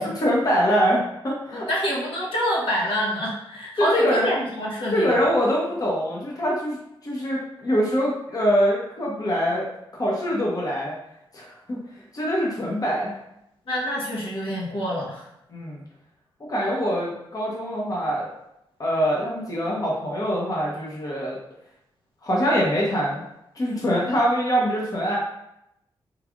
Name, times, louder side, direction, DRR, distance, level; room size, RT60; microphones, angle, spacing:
voice 1, 0.0-1.7 3.8-4.3 4.9-6.8 7.0-10.9 11.3-11.8 12.1-13.2 15.5-15.8 16.5-18.3 18.8-21.4 22.2-23.2 23.5-25.2, equal, 40° left, -3 dB, 0.9 m, -24 dB
voice 2, 1.5-5.1 13.7-15.3, equal, 70° left, -5 dB, 1.1 m, -26 dB
3.4 x 3.2 x 2.4 m, 0.82 s
cardioid pair, 65°, 9 cm